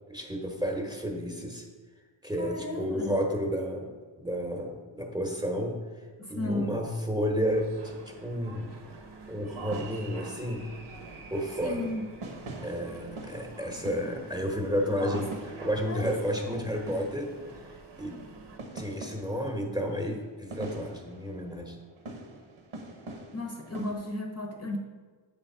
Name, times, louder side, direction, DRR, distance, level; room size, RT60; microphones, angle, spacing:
voice 1, 0.1-1.7 2.2-3.9 4.2-8.7 9.3-10.6 11.3-11.9 12.6-15.3 15.6-17.3 17.6-18.2 18.7-21.8, equal, 10° right, 1 dB, 1.0 m, -31 dB
voice 2, 2.4-3.2 6.2-6.7 11.6-12.0 15.1-15.2 15.6-16.7 16.9-17.1 23.3-24.8, left 1 dB, 30° left, 0 dB, 0.9 m, -35 dB
sound 1, 7.4-18.6, right 3 dB, 60° right, 0.9 m, -47 dB
sound 2, 9.4-23.9, right 2 dB, 80° right, 1.0 m, -45 dB
7.6 x 3.5 x 5.4 m, 1.4 s
wide cardioid pair, 95°, 48 cm